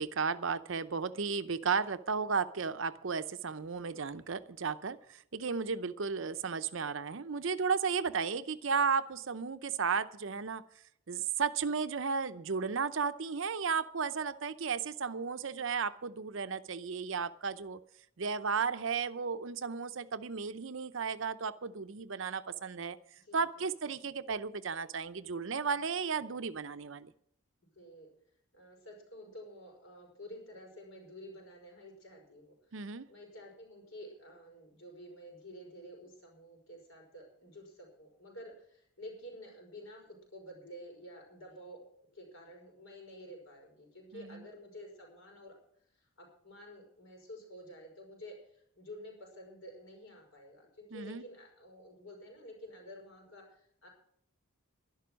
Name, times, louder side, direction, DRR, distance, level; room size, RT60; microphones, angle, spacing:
voice 1, 0.0-10.6 11.1-17.8 18.2-23.0 23.3-27.1 32.7-33.1 44.1-44.4 50.9-51.2, right 5 dB, 65° right, 13 dB, 0.6 m, -34 dB
voice 2, 23.2-23.7 25.8-25.9 27.8-28.1 28.5-41.8 42.1-45.6 46.0-53.9, equal, 70° left, 1 dB, 5.4 m, -51 dB
12.0 x 11.5 x 6.2 m, 0.67 s
head